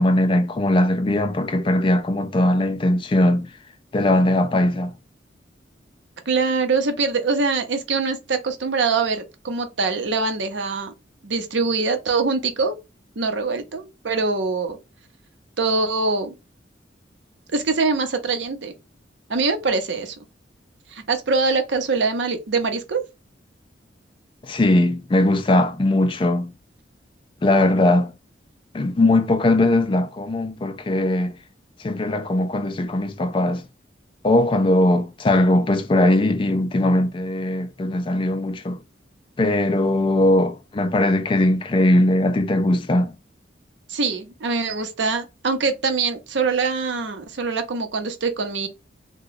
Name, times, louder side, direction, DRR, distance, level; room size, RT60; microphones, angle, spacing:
voice 1, 0.0-3.5 3.9-4.9 24.4-26.5 27.4-28.1 28.7-31.4 31.8-33.6 34.2-38.8 39.4-43.1, left 1 dB, 30° left, 0.3 m, -20 dB
voice 2, 6.3-10.9 11.2-12.7 13.2-14.8 15.6-16.3 17.5-18.7 19.3-20.2 20.9-23.0 43.9-48.7, right 4 dB, 75° right, 0.7 m, -23 dB
2.9 x 2.2 x 3.9 m
head